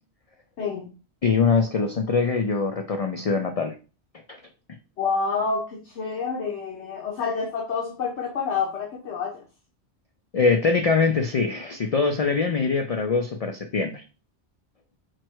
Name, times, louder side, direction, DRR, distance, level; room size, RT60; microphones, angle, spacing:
voice 1, 0.6-0.9 5.0-9.4, left 5 dB, 85° left, -1 dB, 1.2 m, -28 dB
voice 2, 1.2-3.7 4.3-4.4 10.3-14.0, left 4 dB, 60° left, 5 dB, 0.4 m, -23 dB
4.4 x 2.1 x 4.5 m, 0.33 s
omnidirectional pair, 1.1 m